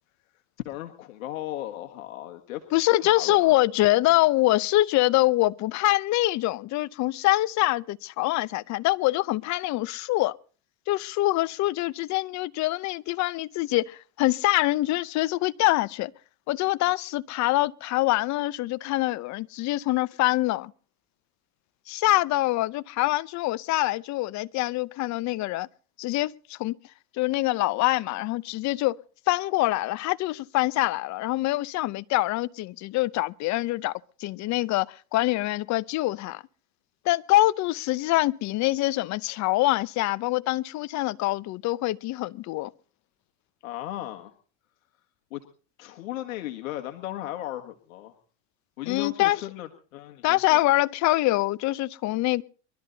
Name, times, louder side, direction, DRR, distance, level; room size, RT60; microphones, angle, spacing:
voice 1, 0.6-2.6 3.0-3.5 43.6-44.3 45.3-45.4 45.8-48.2 48.8-50.6, left 14 dB, 90° left, 1.6 m, -36 dB
voice 2, 2.7-10.3 10.9-16.1 16.5-20.7 21.9-25.7 26.0-26.8 27.2-29.0 29.3-33.9 34.2-36.4 37.0-42.7 48.9-49.4 50.2-52.4, left 17 dB, 45° left, 0.7 m, -25 dB
22.5 x 13.0 x 4.0 m
supercardioid pair, 120°, 40 cm